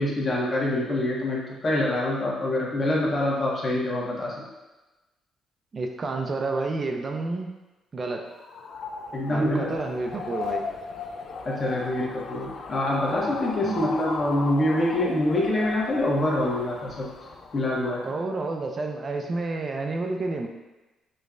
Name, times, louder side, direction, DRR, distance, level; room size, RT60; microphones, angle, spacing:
voice 1, 0.0-4.3 9.1-9.7 11.4-17.1 17.5-18.1, left 1 dB, 40° left, -4 dB, 0.9 m, -25 dB
voice 2, 5.7-7.5 7.9-8.3 9.3-10.6 13.6-13.9 18.0-20.5, right 3 dB, 40° right, 3 dB, 0.4 m, -30 dB
sound 1, 8.3-18.1, left 4 dB, 65° left, 0.4 m, -36 dB
5.1 x 2.2 x 2.5 m, 1.1 s
cardioid pair, 90°, 0 cm